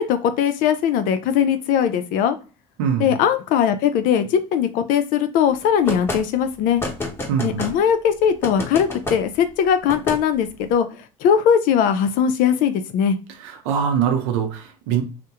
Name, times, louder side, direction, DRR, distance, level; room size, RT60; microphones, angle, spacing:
voice 1, 0.0-2.4 3.0-6.8 7.4-10.9 11.2-13.2, left 8 dB, 70° left, 9 dB, 0.4 m, -20 dB
voice 2, 2.8-3.2 7.3-7.6 13.4-15.0, right 8 dB, 90° right, 5 dB, 0.6 m, -23 dB
sound 1, 5.9-6.2 6.8-7.7 8.4-9.2 9.9-10.2, left 2 dB, 15° left, 0.9 m, -28 dB
2.3 x 2.1 x 2.8 m, 0.34 s
supercardioid pair, 95°, 15 cm